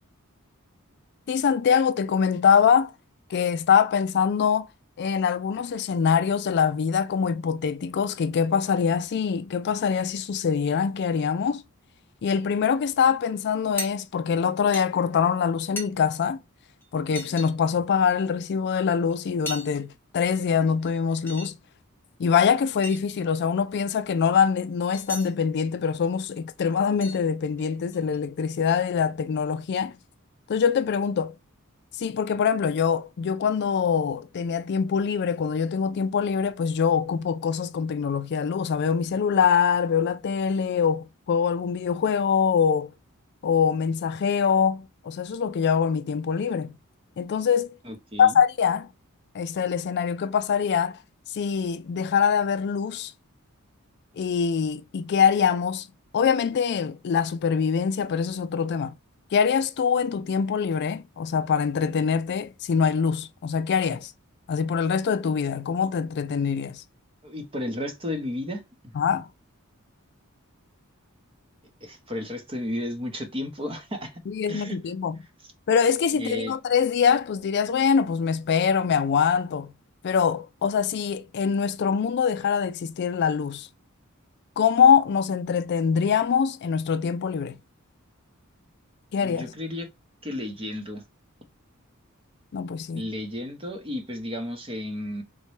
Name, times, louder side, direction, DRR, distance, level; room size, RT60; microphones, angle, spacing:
voice 1, 1.3-2.9 3.3-4.7 5.0-11.6 12.2-16.4 16.9-21.6 22.2-30.0 30.5-31.3 32.0-42.9 43.4-46.7 47.2-47.8 48.2-48.9 49.3-51.0 51.3-53.1 54.2-55.9 56.1-58.9 59.3-64.1 64.5-66.8 68.9-69.3 74.3-75.2 75.7-79.7 80.0-83.7 84.6-87.6 89.1-89.5 92.5-93.1, left 6 dB, 50° left, 0.3 m, -24 dB
sound 1, 13.8-13.9 14.7-14.9 15.8-15.9 16.8-16.9 17.1-17.5 19.1-19.2 19.5-19.8 20.7-21.5 22.2-22.3 22.8-23.0 24.9-25.3 26.4-26.5 27.0-27.2 27.6-28.2, left 1 dB, 10° left, 0.8 m, -36 dB
voice 2, 47.9-48.3 67.2-68.9 71.8-74.1 74.5-74.8 76.1-76.5 89.2-89.9 90.2-91.0 92.9-95.2, left 1 dB, 25° right, 0.7 m, -33 dB
4.0 x 2.2 x 3.0 m
head